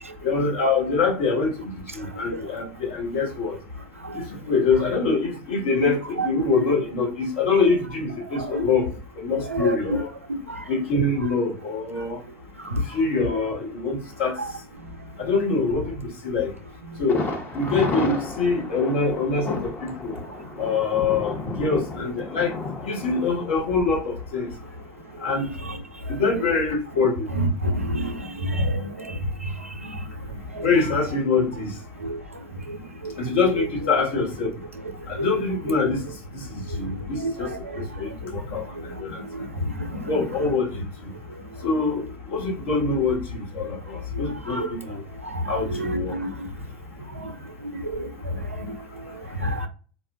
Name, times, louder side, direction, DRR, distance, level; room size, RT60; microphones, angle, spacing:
voice 1, 0.2-3.6 4.1-8.9 9.2-10.1 10.7-12.2 12.9-14.4 15.2-16.5 17.0-17.2 17.5-20.1 20.6-22.5 22.9-24.5 25.2-25.5 26.1-27.2 30.6-31.8 33.2-34.5 35.1-36.0 36.3-39.2 40.1-40.8 41.6-45.0 45.5-46.1, left 4 dB, 60° left, 1.2 m, -24 dB
voice 2, 6.2-6.8 8.4-8.5 9.5-10.0 10.3-10.6 25.7-25.8 26.2-26.3 27.3-28.2 28.5-28.8 30.5-30.6 32.0-32.2 33.6-33.7 35.2-35.3 37.2-37.5 40.1-40.2 44.5-44.7 45.3-46.3 47.9-48.1 49.4-49.7, right 1 dB, 90° right, 0.5 m, -27 dB
Thunder, 17.1-24.9 25.2-25.3 25.7-25.8, left 2 dB, 25° left, 0.8 m, -33 dB
4.1 x 2.3 x 2.4 m
figure-of-eight pair, 75°, 7 cm